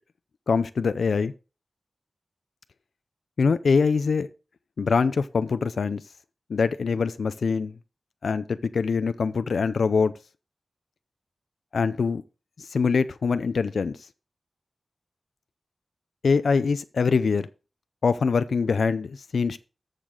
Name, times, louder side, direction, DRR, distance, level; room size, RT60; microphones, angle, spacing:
voice 1, 0.5-1.3 3.4-4.3 4.8-6.0 6.5-7.7 8.2-10.1 11.7-12.2 12.6-14.0 16.2-17.5 18.0-19.6, left 5 dB, 90° left, 0.5 m, -23 dB
13.5 x 6.7 x 3.8 m
wide cardioid pair, 115°, 0 cm